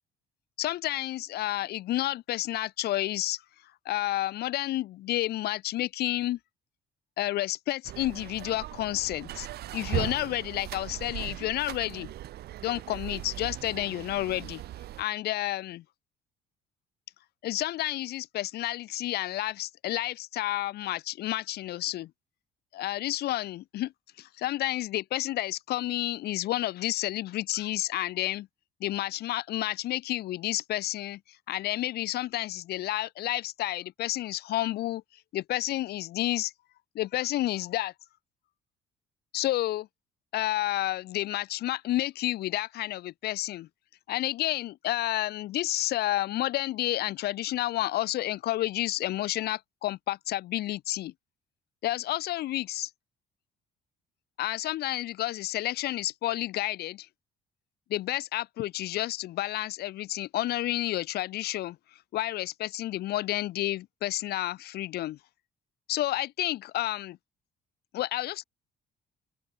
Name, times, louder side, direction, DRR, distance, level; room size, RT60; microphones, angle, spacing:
voice 1, 0.6-3.4 3.8-6.4 7.2-9.5 9.7-12.1 12.6-14.6 15.0-15.8 17.4-22.1 22.7-23.9 24.2-28.5 28.8-31.2 31.5-35.0 35.3-36.5 36.9-37.9 39.3-39.9 40.3-43.7 44.1-51.1 51.8-52.9 54.4-57.1 57.9-61.8 62.1-65.2 65.9-67.2 67.9-68.4, left 15 dB, 70° left, 1.3 m, -30 dB
sound 1, 7.8-15.0, right 14 dB, 70° right, 7.2 m, -38 dB
open air
cardioid pair, 110°, 17 cm